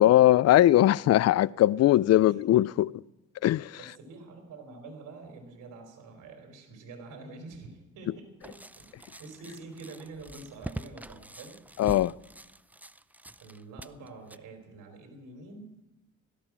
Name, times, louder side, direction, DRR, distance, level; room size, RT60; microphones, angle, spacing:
voice 1, 0.0-2.9 3.4-3.8 11.8-12.1, left 13 dB, 55° left, 0.4 m, -20 dB
voice 2, 2.1-2.6 3.7-11.6 13.4-15.9, right 3 dB, 85° right, 3.7 m, -47 dB
sound 1, 8.4-14.4, right 1 dB, 5° right, 0.4 m, -44 dB
17.0 x 13.5 x 6.1 m
cardioid pair, 90°, 30 cm